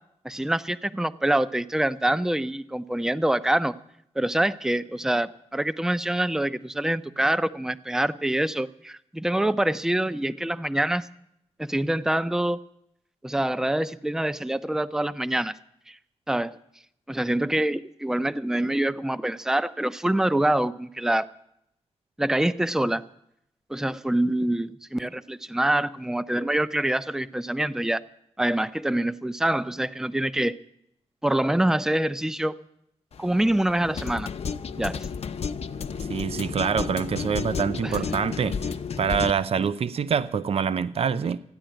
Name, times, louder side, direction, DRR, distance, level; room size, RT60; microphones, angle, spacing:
voice 1, 0.2-3.7 4.2-11.1 11.6-12.6 13.2-15.5 15.9-16.0 16.3-16.6 17.1-21.3 22.2-23.0 23.7-28.0 28.4-30.6 31.2-32.6 33.2-34.3 34.8-35.0 37.8-38.0, right 1 dB, 5° right, 0.5 m, -25 dB
sound 1, 33.1-39.3, left 6 dB, 65° left, 0.8 m, -32 dB
voice 2, 36.1-41.4, right 6 dB, 60° right, 0.5 m, -26 dB
14.5 x 10.5 x 9.0 m
wide cardioid pair, 110°, 11 cm